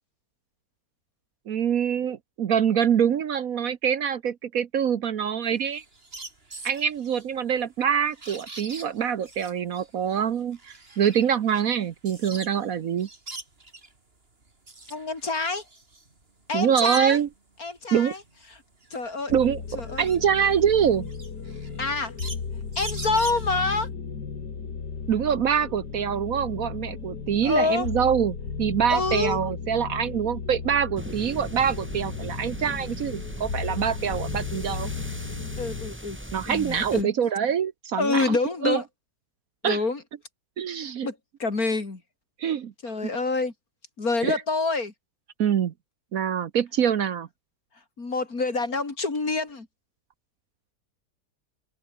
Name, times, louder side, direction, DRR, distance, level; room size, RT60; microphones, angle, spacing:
voice 1, 1.5-5.8 6.6-13.1 16.5-17.3 17.9-18.1 19.3-19.6 20.0-21.1 25.1-34.9 36.3-38.4 38.6-38.8 39.6-39.8 40.6-41.1 42.4-42.7 44.2-44.4 45.4-45.7 46.1-47.3, right 8 dB, 60° right, 1.3 m, -25 dB
sound 1, 5.4-12.7 13.0-14.0 14.4-17.4 17.8-23.8, right 2 dB, 35° right, 3.5 m, -43 dB
voice 2, 14.9-15.6 16.5-17.2 17.6-18.2 18.9-19.3 19.8-20.0 21.8-22.1 22.8-23.9 27.4-27.9 28.9-29.4 35.6-36.2 36.5-37.1 38.0-38.8 39.6-40.0 41.0-42.0 42.8-43.5 44.0-44.9 48.0-49.7, left 3 dB, 60° left, 4.1 m, -27 dB
sound 2, 19.3-35.9, left 5 dB, 75° left, 3.0 m, -35 dB
sound 3, 31.0-37.0, equal, 5° right, 4.2 m, -39 dB
open air
omnidirectional pair, 1.8 m